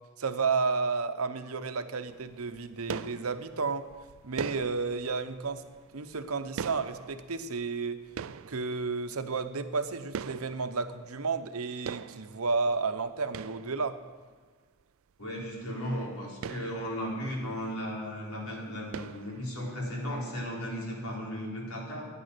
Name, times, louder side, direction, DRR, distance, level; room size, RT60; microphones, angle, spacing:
voice 1, 0.2-3.9 4.2-5.6 5.9-8.0 8.5-14.0, right 4 dB, 85° right, 9 dB, 0.9 m, -32 dB
sound 1, 2.1-11.6 11.9-14.3 14.8-14.9 15.2-15.3 15.5-15.7 16.1-18.0 18.2-18.5 18.9-19.9, right 6 dB, 65° right, 0.4 m, -43 dB
voice 2, 15.2-22.1, equal, 90° left, -3 dB, 4.3 m, -35 dB
14.5 x 9.7 x 6.7 m, 1.5 s
head